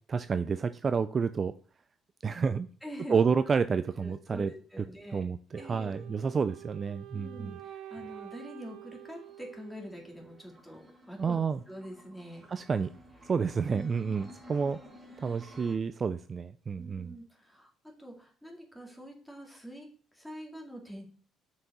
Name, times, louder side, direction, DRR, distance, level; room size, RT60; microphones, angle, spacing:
voice 1, 0.1-1.5 2.2-2.7 3.1-4.5 5.1-7.6 11.2-11.6 12.5-12.9 13.2-14.8 15.2-17.1, right 5 dB, 35° right, 12 dB, 0.3 m, -29 dB
voice 2, 2.8-3.2 4.0-5.3 5.6-6.2 7.1-11.4 11.7-12.5 13.6-13.9 16.8-21.0, equal, ahead, 0 dB, 2.2 m, -45 dB
Wind instrument woodwind instrument, 5.5-10.6, right 12 dB, 70° right, 0.8 m, -48 dB
sound 1, 9.0-15.8, equal, 20° right, 2.1 m, -54 dB
6.2 x 4.7 x 4.2 m, 0.42 s
cardioid pair, 90°, 0 cm